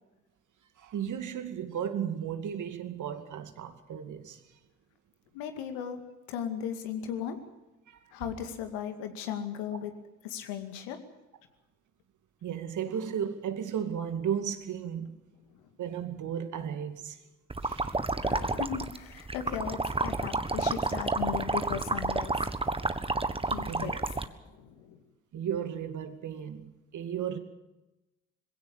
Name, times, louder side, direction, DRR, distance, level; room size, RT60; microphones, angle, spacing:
voice 1, 0.8-4.6 7.9-8.1 12.4-15.1 15.8-17.2 17.6-18.0 23.7-24.0 25.3-27.4, right 8 dB, 55° right, 2.3 m, -35 dB
voice 2, 5.3-6.0 6.3-7.4 8.1-9.9 10.2-11.0 15.5-15.6 18.1-22.5 23.5-23.9 24.4-25.0, left 9 dB, 75° left, 2.3 m, -37 dB
sound 1, 17.5-24.3, right 3 dB, 15° right, 1.5 m, -30 dB
21.5 x 16.5 x 8.8 m
hypercardioid pair, 50°, 36 cm